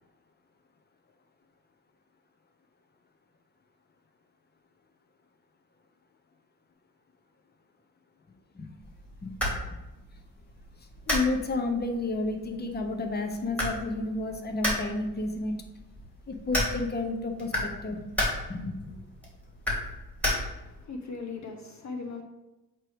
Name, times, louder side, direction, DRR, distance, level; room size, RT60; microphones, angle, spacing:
sound 1, 8.8-20.8, left 1 dB, 5° left, 2.4 m, -34 dB
voice 1, 11.1-15.5 16.3-18.1 18.5-18.9, left 2 dB, 25° left, 4 dB, 0.9 m, -31 dB
voice 2, 20.6-22.2, left 4 dB, 50° left, 3 dB, 0.8 m, -39 dB
7.4 x 3.1 x 5.0 m, 1.0 s
cardioid pair, 105°, 36 cm